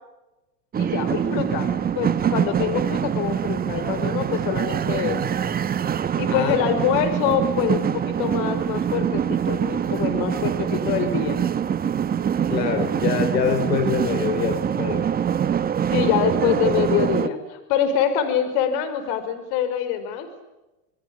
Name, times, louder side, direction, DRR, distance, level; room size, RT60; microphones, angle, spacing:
sound 1, 0.7-17.3, right 8 dB, 20° right, 1.0 m, -24 dB
voice 1, 0.8-5.4 6.2-11.4 15.9-20.3, left 8 dB, 55° left, 10 dB, 5.4 m, -25 dB
voice 2, 12.5-15.1, left 7 dB, 85° left, 9 dB, 5.0 m, -25 dB
28.5 x 21.5 x 8.6 m, 1.0 s
supercardioid pair, 120°, 49 cm